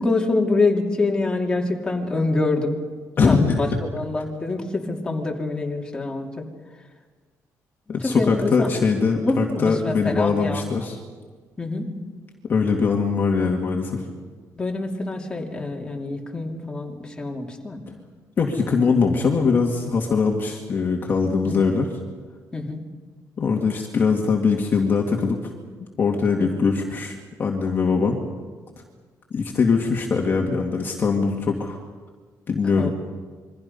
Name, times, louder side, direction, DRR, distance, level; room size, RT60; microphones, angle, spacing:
voice 1, 0.0-2.7 3.3-3.7 3.9-6.4 8.0-8.7 9.2-10.6 11.6-11.9 14.6-17.8 21.4-21.7 22.5-22.8 26.4-26.5 32.7-32.9, left 3 dB, 15° left, 0 dB, 2.8 m, -25 dB
voice 2, 3.2-3.8 7.9-11.0 12.5-14.0 18.4-21.9 23.4-25.4 26.0-28.2 29.3-31.8 32.5-32.9, left 5 dB, 35° left, 1 dB, 2.1 m, -21 dB
27.5 x 23.5 x 5.5 m, 1.4 s
cardioid pair, 165°, 6 cm